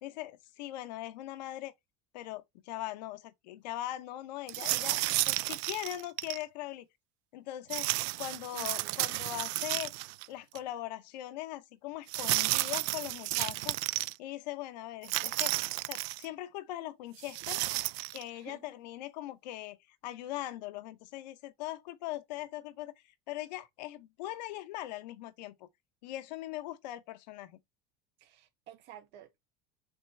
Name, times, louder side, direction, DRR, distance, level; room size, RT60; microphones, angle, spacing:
voice 1, 0.0-1.7 2.1-6.9 7.3-7.9 8.2-9.9 10.3-15.5 15.8-17.6 18.1-25.7 26.0-27.6, left 14 dB, 90° left, 0.8 m, -41 dB
sound 1, 4.5-6.4 7.7-10.3 10.6-10.7 12.1-14.1 15.0-16.3 17.2-18.2, right 20 dB, 70° right, 0.4 m, -32 dB
voice 2, 8.5-9.0 18.3-18.7 28.2-29.4, right 12 dB, 55° right, 1.8 m, -52 dB
7.8 x 3.2 x 4.3 m
supercardioid pair, 115°, 21 cm